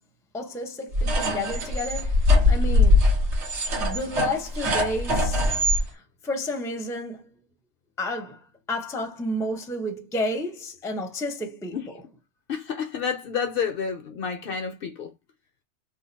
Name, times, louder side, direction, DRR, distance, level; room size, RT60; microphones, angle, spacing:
voice 1, 0.3-3.1 3.8-5.4 5.9-7.3 8.0-8.4 8.7-11.8, left 1 dB, 5° left, 0.5 m, -31 dB
sound 1, 0.9-5.8, left 2 dB, 80° right, 1.2 m, -21 dB
voice 2, 12.5-15.1, left 6 dB, 65° left, 0.7 m, -29 dB
2.9 x 2.3 x 3.9 m
omnidirectional pair, 1.2 m